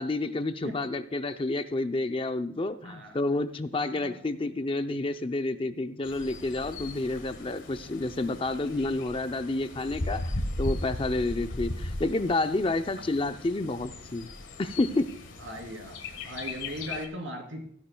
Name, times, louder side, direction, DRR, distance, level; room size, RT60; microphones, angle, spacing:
voice 1, 0.0-14.3 14.6-15.1, left 2 dB, 30° left, 9 dB, 0.5 m, -29 dB
voice 2, 2.8-3.2 3.9-4.3 11.3-11.5 12.9-13.0 15.4-17.6, equal, 90° right, 2 dB, 3.0 m, -39 dB
Bird, 6.0-17.1, left 1 dB, 85° left, 1.6 m, -37 dB
15.0 x 11.0 x 2.3 m, 0.66 s
head